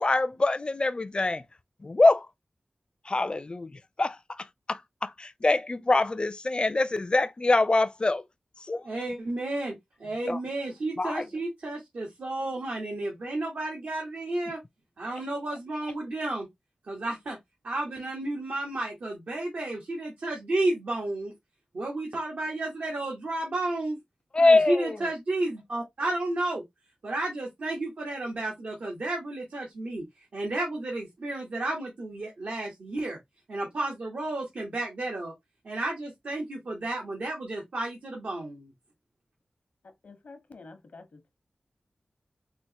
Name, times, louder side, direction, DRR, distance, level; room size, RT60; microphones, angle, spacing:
voice 1, 0.0-1.4 1.8-2.3 3.1-8.2 8.6-8.9 10.3-10.4 11.0-11.3 24.3-25.0, left 2 dB, 40° left, 0.4 m, -24 dB
voice 2, 8.8-9.7 10.0-14.6 15.0-16.5 16.9-17.4 17.6-21.3 21.7-24.0 24.4-26.6 27.0-30.0 30.3-33.2 33.5-35.3 35.6-38.7, right 2 dB, 80° right, 1.0 m, -32 dB
voice 3, 40.0-41.3, left 3 dB, 80° left, 0.8 m, -48 dB
4.4 x 2.1 x 2.7 m
cardioid pair, 55°, 3 cm